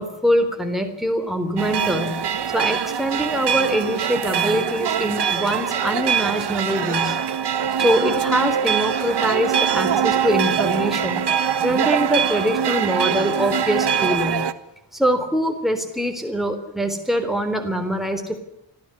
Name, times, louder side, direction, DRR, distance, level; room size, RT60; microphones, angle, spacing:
voice 1, 0.0-2.2 2.5-7.2 7.8-11.2 11.6-14.4 14.9-18.4, equal, ahead, 4 dB, 3.7 m, -23 dB
sound 1, 1.6-14.5, right 8 dB, 65° right, 1.5 m, -23 dB
25.0 x 16.0 x 9.9 m, 0.85 s
wide cardioid pair, 165°, 43 cm